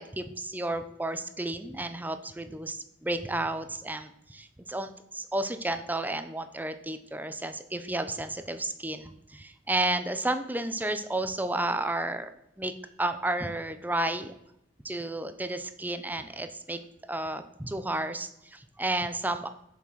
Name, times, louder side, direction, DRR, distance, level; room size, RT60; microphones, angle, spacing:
voice 1, 0.0-12.3 12.6-12.7 13.0-14.3 14.8-16.8 17.1-19.5, right 2 dB, 10° right, 10 dB, 0.6 m, -32 dB
7.3 x 6.1 x 6.2 m, 0.81 s
head